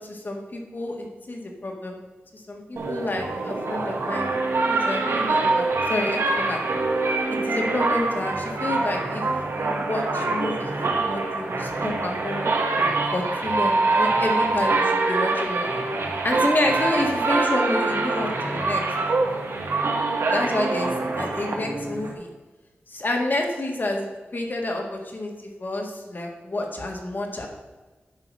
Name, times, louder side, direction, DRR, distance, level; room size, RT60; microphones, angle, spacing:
voice 1, 0.0-2.0 2.5-4.3 4.6-6.6 7.4-9.2 9.5-12.5 13.1-15.8 16.2-18.8 20.3-22.3 22.9-27.5, left 2 dB, 45° left, 1 dB, 1.7 m, -29 dB
sound 1, 2.8-22.1, right 3 dB, 90° right, 1.4 m, -24 dB
10.5 x 4.0 x 6.1 m, 1.2 s
wide cardioid pair, 85°, 4 cm